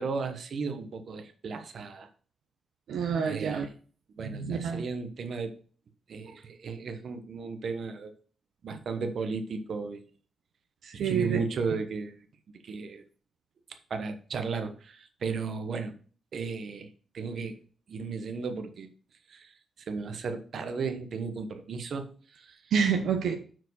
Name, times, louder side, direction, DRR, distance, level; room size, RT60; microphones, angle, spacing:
voice 1, 0.0-2.1 3.2-3.7 4.2-5.6 6.1-8.1 8.6-10.0 11.0-12.2 12.6-13.0 13.9-15.9 16.3-16.9 17.1-17.6 17.9-18.9 19.3-19.5 19.9-22.1 22.3-22.6, right 5 dB, 60° right, 8 dB, 1.1 m, -35 dB
voice 2, 2.9-3.7 4.2-4.8 10.8-11.4 22.7-23.4, right 6 dB, 80° right, 5 dB, 0.8 m, -28 dB
6.1 x 4.7 x 6.2 m, 0.41 s
cardioid pair, 115°, 0 cm